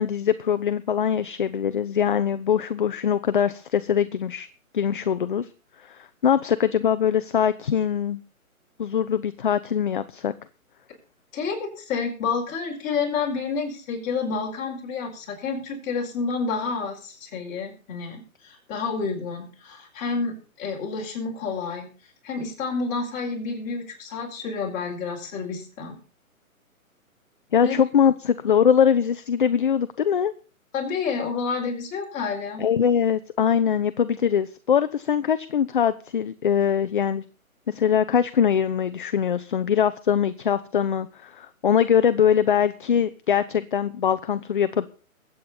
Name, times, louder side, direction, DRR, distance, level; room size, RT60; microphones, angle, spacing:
voice 1, 0.0-4.5 4.7-5.5 5.9-8.2 8.8-10.3 27.5-30.3 32.6-37.2 37.7-44.9, left 8 dB, 35° left, 12 dB, 0.6 m, -22 dB
voice 2, 11.3-21.9 22.2-26.0 27.6-27.8 30.7-32.6, left 5 dB, 20° left, -1 dB, 4.7 m, -29 dB
22.0 x 8.7 x 4.2 m, 0.37 s
hypercardioid pair, 155°, 43 cm